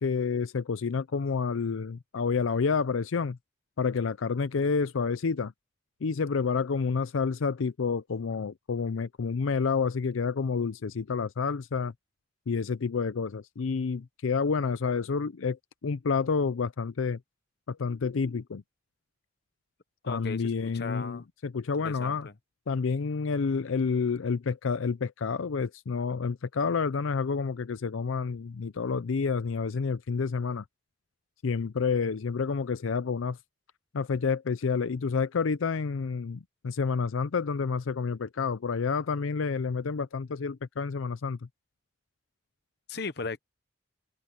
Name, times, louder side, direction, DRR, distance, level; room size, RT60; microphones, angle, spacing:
voice 1, 0.0-3.4 3.8-5.5 6.0-11.9 12.5-17.2 17.7-18.6 20.1-22.3 22.7-30.6 31.4-33.4 33.9-41.4, left 5 dB, 85° left, 0.5 m, -29 dB
voice 2, 20.0-21.3 21.7-22.3 42.9-43.4, left 4 dB, 55° left, 1.0 m, -37 dB
head